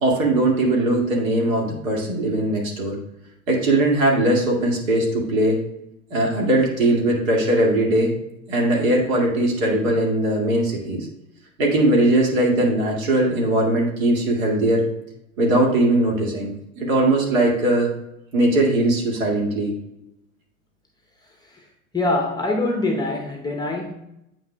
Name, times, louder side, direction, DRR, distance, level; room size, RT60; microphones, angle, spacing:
voice 1, 0.0-3.0 3.5-5.6 6.1-8.1 8.5-11.1 11.6-14.8 15.4-17.9 18.3-19.7, right 1 dB, 60° right, -1 dB, 2.2 m, -20 dB
voice 2, 21.9-23.9, left 2 dB, 10° left, 1 dB, 0.8 m, -23 dB
8.7 x 5.8 x 2.2 m, 0.85 s
figure-of-eight pair, 90°, 45 cm